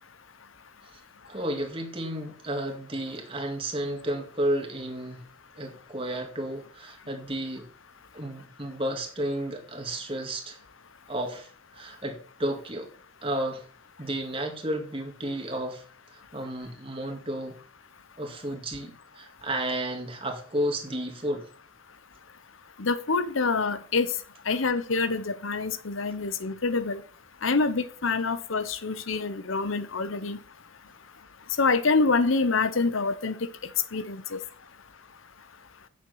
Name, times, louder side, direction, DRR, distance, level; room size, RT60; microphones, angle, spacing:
voice 1, 1.3-5.2 5.6-7.7 8.1-10.6 11.1-12.9 13.2-13.6 14.0-17.6 18.2-21.5, right 1 dB, 25° right, 2.0 m, -32 dB
voice 2, 22.8-24.1 24.5-27.0 27.4-30.4 31.6-33.3 33.9-34.4, left 4 dB, 80° left, 0.9 m, -26 dB
8.8 x 7.3 x 5.6 m
head